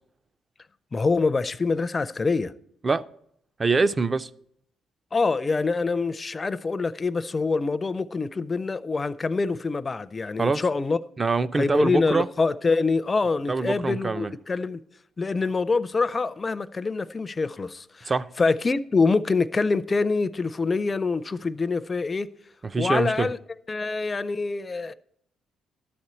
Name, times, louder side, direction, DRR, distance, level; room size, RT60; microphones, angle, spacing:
voice 1, 0.9-2.5 5.1-11.0 11.5-14.8 15.2-18.1 18.4-22.3 22.8-23.4 23.7-24.9, left 4 dB, 30° left, 0.4 m, -25 dB
voice 2, 3.6-4.3 10.4-10.6 11.2-12.3 13.5-14.3 18.1-18.3 22.7-23.3, right 3 dB, 30° right, 0.4 m, -24 dB
12.5 x 4.3 x 8.0 m
cardioid pair, 90°, 0 cm